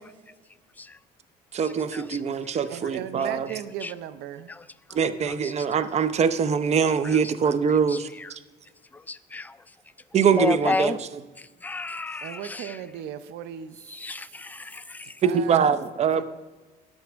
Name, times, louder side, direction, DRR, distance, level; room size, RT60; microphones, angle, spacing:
voice 1, 1.5-3.5 4.9-8.4 10.1-11.2 15.2-16.2, right 6 dB, 40° right, 13 dB, 0.7 m, -23 dB
voice 2, 2.7-4.5 12.2-13.8 15.0-15.7 16.2-16.3, right 10 dB, 85° right, 13 dB, 0.6 m, -37 dB
voice 3, 9.1-9.5 10.4-11.0 11.6-12.7 13.9-15.0, left 3 dB, 10° left, 13 dB, 0.3 m, -30 dB
13.5 x 10.0 x 3.5 m, 1.2 s
cardioid pair, 110°, 17 cm